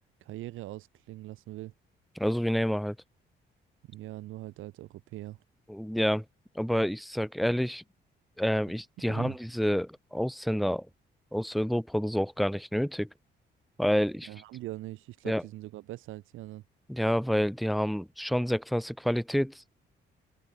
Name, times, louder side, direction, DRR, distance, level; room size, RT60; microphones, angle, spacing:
voice 1, 0.2-1.7 3.9-5.4 9.1-9.4 14.2-16.6, right 16 dB, 90° right, 1.7 m, -42 dB
voice 2, 2.2-3.0 5.7-6.2 6.6-7.8 8.4-10.9 11.3-13.1 13.8-14.3 15.2-15.4 16.9-19.7, equal, ahead, 0.4 m, -28 dB
open air
cardioid pair, 90°, 20 cm